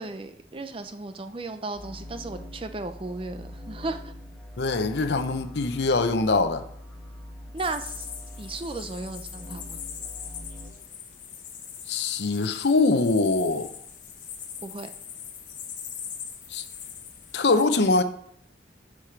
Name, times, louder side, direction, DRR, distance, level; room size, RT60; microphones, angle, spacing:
voice 1, 0.0-4.1 7.5-8.1 8.4-9.8 14.6-14.9, right 3 dB, 30° right, 0.6 m, -35 dB
sound 1, 1.7-10.7, left 1 dB, 5° left, 1.3 m, -43 dB
voice 2, 4.6-6.6 11.9-13.7 16.5-16.6 17.3-18.0, left 3 dB, 70° left, 0.7 m, -23 dB
sound 2, 7.6-17.4, left 8 dB, 45° left, 1.1 m, -41 dB
8.7 x 4.9 x 5.8 m
head